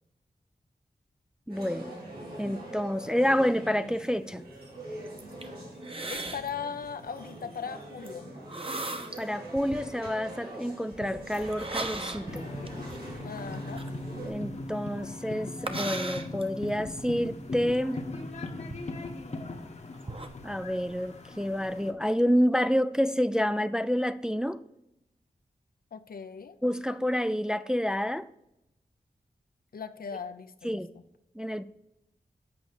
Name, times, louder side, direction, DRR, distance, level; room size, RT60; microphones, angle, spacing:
voice 1, 1.5-1.9 2.4-4.4 9.2-12.4 14.2-18.1 20.4-24.6 26.6-28.3 30.6-30.9 31.4-31.6, equal, 5° right, 0.3 m, -28 dB
sound 1, 1.5-14.3, right 1 dB, 85° right, 2.5 m, -44 dB
sound 2, 5.1-5.5 5.8-6.5 6.8-7.1 8.1-8.2 8.5-9.2 9.6-10.1 10.9-14.8 15.6-17.0 17.7-17.8 18.3-19.6 19.9-20.3, right 2 dB, 35° right, 0.9 m, -37 dB
voice 2, 6.1-8.3 13.2-13.8 25.9-26.6 29.7-30.8, left 6 dB, 70° left, 0.6 m, -38 dB
sound 3, 12.3-21.9, left 2 dB, 45° left, 1.0 m, -39 dB
8.4 x 5.2 x 4.8 m
cardioid pair, 50°, 16 cm